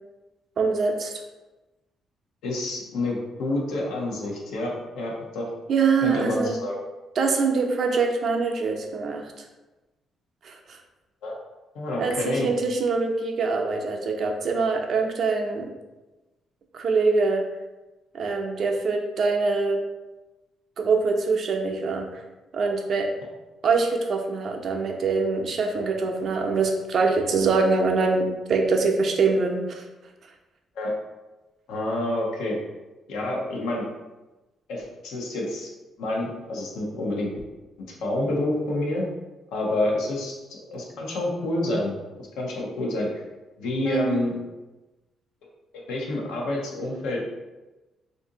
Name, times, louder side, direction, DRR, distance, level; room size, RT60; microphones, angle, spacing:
voice 1, 0.6-1.1 5.7-6.5 7.2-9.4 10.4-10.8 12.0-15.7 16.7-17.4 18.1-19.8 20.8-22.1 22.5-23.1 23.6-29.8 43.8-44.2, right 4 dB, 55° right, 2 dB, 0.5 m, -24 dB
voice 2, 2.4-5.5 6.0-6.8 11.2-11.4 11.7-12.5 30.7-30.9 31.7-32.6 33.1-33.9 34.7-35.7 36.0-37.3 38.0-39.1 39.5-42.0 42.4-43.2 43.6-44.3 45.7-47.2, left 1 dB, 90° left, -1 dB, 0.7 m, -28 dB
2.6 x 2.6 x 3.7 m, 1.1 s
cardioid pair, 90°, 0 cm